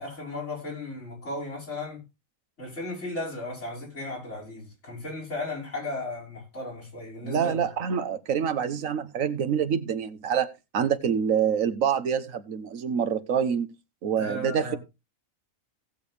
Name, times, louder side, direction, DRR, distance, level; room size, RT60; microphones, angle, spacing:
voice 1, 0.0-2.0 2.6-7.6 14.2-14.8, left 2 dB, 60° left, 6.0 m, -35 dB
voice 2, 7.2-10.5 10.7-13.7 14.0-14.8, right 7 dB, 80° right, 1.4 m, -26 dB
18.0 x 6.9 x 3.4 m
omnidirectional pair, 1.4 m